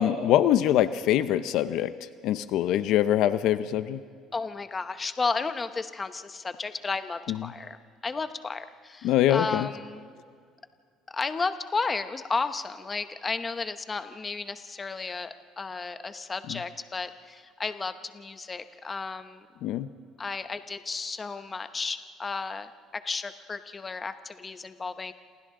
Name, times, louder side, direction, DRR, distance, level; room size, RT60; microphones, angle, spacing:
voice 1, 0.0-1.9 2.2-4.0 7.3-7.4 9.0-9.7 16.5-16.6 19.6-19.9, left 11 dB, 70° left, 12 dB, 0.7 m, -23 dB
voice 2, 4.3-7.8 8.0-10.1 11.1-19.5 20.2-25.1, left 4 dB, 20° left, 10 dB, 0.9 m, -33 dB
28.0 x 28.0 x 3.8 m, 2.1 s
cardioid pair, 130°, 0 cm